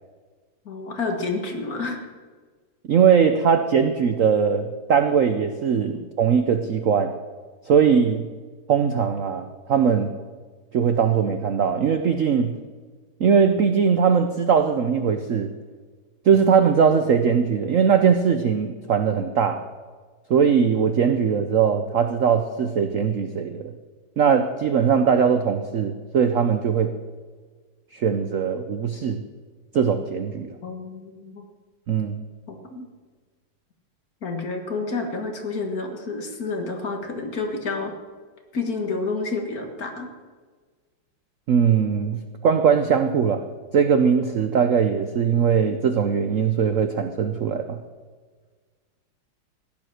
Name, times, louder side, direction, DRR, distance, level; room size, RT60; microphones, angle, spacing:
voice 1, 0.7-2.0 30.6-31.4 32.5-32.9 34.2-37.9 38.5-40.1, left 3 dB, 45° left, 4 dB, 2.0 m, -29 dB
voice 2, 2.9-7.1 7.7-8.2 8.7-10.1 10.7-12.5 13.2-15.5 16.2-19.6 20.3-23.6 24.2-26.9 27.9-29.2 29.7-30.6 31.9-32.2 41.5-43.4 43.7-47.8, right 7 dB, 65° right, 8 dB, 0.8 m, -20 dB
15.5 x 10.5 x 6.5 m, 1.5 s
omnidirectional pair, 2.2 m